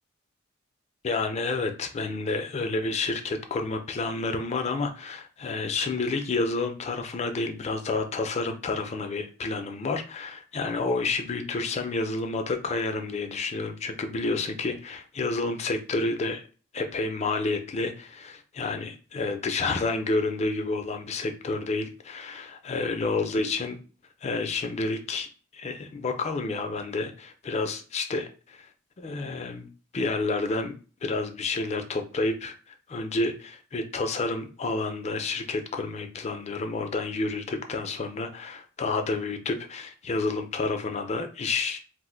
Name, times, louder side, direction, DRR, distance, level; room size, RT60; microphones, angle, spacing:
voice 1, 1.0-16.4 16.7-23.8 24.2-25.3 25.5-28.7 29.0-29.7 29.9-30.7 31.0-41.8, left 3 dB, 35° left, 6 dB, 0.4 m, -29 dB
2.5 x 2.0 x 3.7 m, 0.37 s
head